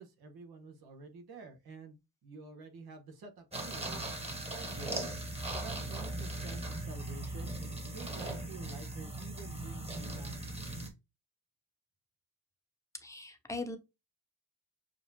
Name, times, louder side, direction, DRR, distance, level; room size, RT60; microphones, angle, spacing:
voice 1, 0.0-4.0 4.4-5.0 5.5-7.5 7.9-10.6, right 4 dB, 75° right, 1.6 m, -49 dB
sound 1, 3.5-10.9, right 1 dB, 15° right, 1.4 m, -39 dB
voice 2, 13.0-13.8, left 2 dB, 10° left, 1.0 m, -40 dB
6.9 x 2.4 x 2.7 m
cardioid pair, 90°, 37 cm